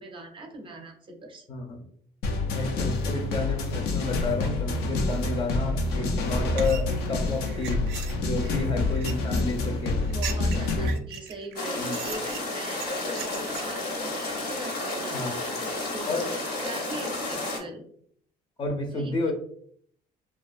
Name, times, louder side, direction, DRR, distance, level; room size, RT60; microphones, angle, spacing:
voice 1, 0.0-1.4 10.1-17.8 18.9-19.3, right 2 dB, 30° right, 3 dB, 0.5 m, -41 dB
voice 2, 1.5-1.8 2.4-7.8 8.2-10.0 10.5-10.9 11.8-12.0 15.1-15.4 16.1-16.3 18.6-19.3, left 3 dB, 30° left, 2 dB, 0.5 m, -31 dB
sound 1, 2.2-11.0, left 2 dB, 85° left, 0.4 m, -27 dB
sound 2, 6.3-13.8, right 8 dB, 80° right, 0.4 m, -40 dB
sound 3, 11.6-17.6, left 2 dB, 65° left, 0.8 m, -32 dB
2.4 x 2.2 x 2.4 m, 0.62 s
cardioid pair, 110°, 17 cm